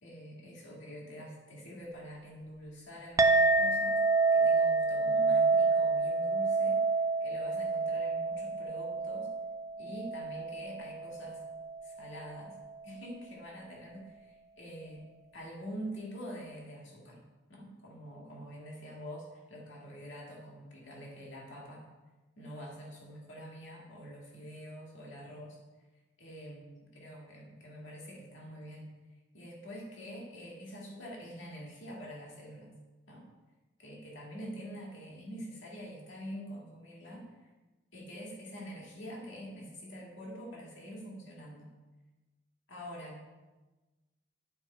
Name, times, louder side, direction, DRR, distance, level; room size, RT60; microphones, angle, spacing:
voice 1, 0.0-4.0 4.3-6.8 7.2-9.3 9.8-11.4 11.8-12.6 12.8-15.0 15.3-17.2 17.5-21.9 22.4-25.6 26.2-28.9 29.3-32.8 33.1-33.3 33.8-37.5 37.9-41.7 42.7-43.2, equal, 65° left, -2 dB, 2.1 m, -46 dB
Chink clink, 3.2-11.9, right 3 dB, 15° right, 0.3 m, -28 dB
10.0 x 4.7 x 4.3 m, 1.2 s
head